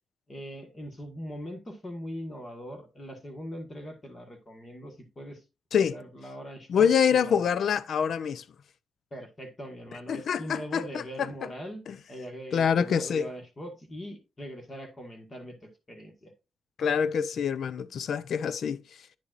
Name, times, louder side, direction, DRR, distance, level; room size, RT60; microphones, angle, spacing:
voice 1, 0.3-5.4 5.8-7.5 9.1-16.3, equal, 20° left, 1.5 m, -41 dB
voice 2, 6.7-8.4 10.1-11.3 11.9-12.0 12.5-13.3 16.8-18.8, left 7 dB, 60° left, 0.5 m, -26 dB
9.4 x 7.0 x 2.5 m
wide cardioid pair, 160°, 0 cm